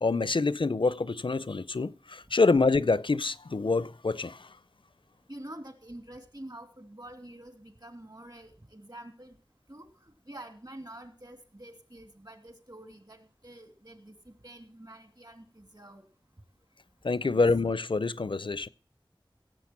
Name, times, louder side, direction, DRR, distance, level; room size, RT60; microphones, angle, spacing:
voice 1, 0.0-4.4 17.0-18.7, left 3 dB, 75° left, 0.5 m, -26 dB
voice 2, 5.3-9.3 9.7-16.1 17.2-17.4, right 1 dB, 50° right, 2.8 m, -47 dB
16.5 x 7.8 x 5.9 m
wide cardioid pair, 40°, 9 cm